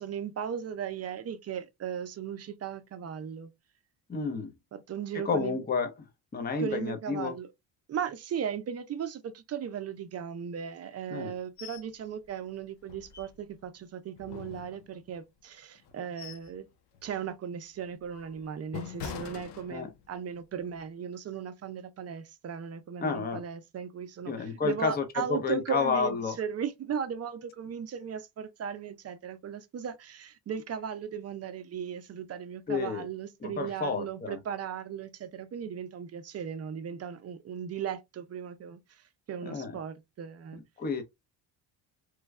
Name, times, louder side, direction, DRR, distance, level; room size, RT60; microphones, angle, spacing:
voice 1, 0.0-3.5 4.7-5.6 6.6-7.5 7.9-16.7 17.0-40.6, right 8 dB, 35° right, 0.5 m, -37 dB
voice 2, 4.1-4.5 5.1-5.9 6.3-7.4 11.1-11.3 19.7-19.9 23.0-23.4 24.3-25.0 25.3-26.4 32.7-33.1 33.4-34.4 39.4-39.7 40.8-41.0, left 5 dB, 20° left, 0.7 m, -30 dB
sound 1, 11.6-11.9 12.2-12.3 12.8-13.7 14.2-15.2 15.8-16.6 16.9-17.2 17.7-20.2 20.6-20.8, left 7 dB, 65° left, 0.8 m, -43 dB
3.1 x 2.2 x 3.4 m
cardioid pair, 125°, 43 cm